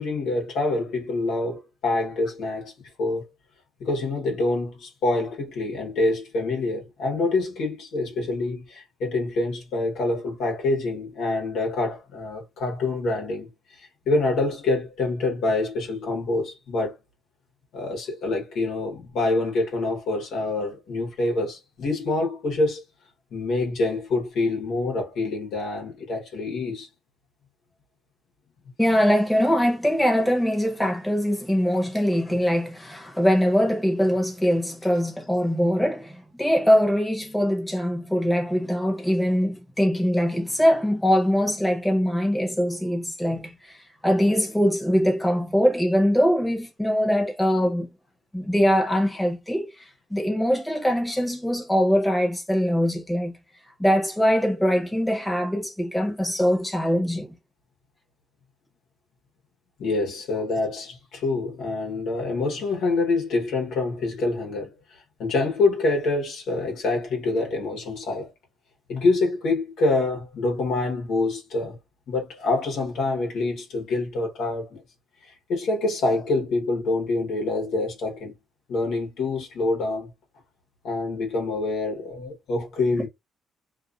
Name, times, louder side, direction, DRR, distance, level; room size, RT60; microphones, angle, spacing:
voice 1, 0.0-2.7 3.0-3.3 3.8-16.9 17.7-22.8 23.3-26.9 43.3-43.4 59.8-68.3 68.9-71.8 72.1-74.8 75.2-78.3 78.7-80.1 80.8-83.1, left 2 dB, 80° left, 1.1 m, -26 dB
voice 2, 28.8-43.8 44.0-47.9 48.3-53.3 53.8-57.3, equal, 5° left, 1.0 m, -22 dB
2.6 x 2.4 x 2.4 m
cardioid pair, 90°, 0 cm